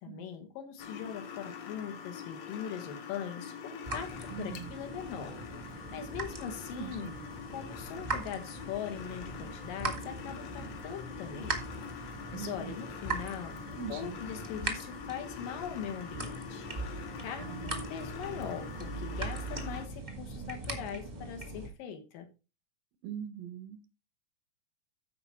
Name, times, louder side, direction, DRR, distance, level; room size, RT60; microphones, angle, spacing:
voice 1, 0.0-5.4 5.9-7.1 7.5-11.6 12.3-13.6 13.9-22.3, left 8 dB, 75° left, 3.0 m, -41 dB
sound 1, 0.8-19.9, left 7 dB, 60° left, 2.1 m, -45 dB
sound 2, 3.8-21.7, right 3 dB, 30° right, 0.7 m, -41 dB
voice 2, 4.3-4.7 6.7-7.3 12.3-12.7 13.8-14.2 17.4-17.8 23.0-23.8, right 8 dB, 85° right, 2.8 m, -42 dB
14.0 x 4.8 x 4.2 m
omnidirectional pair, 4.0 m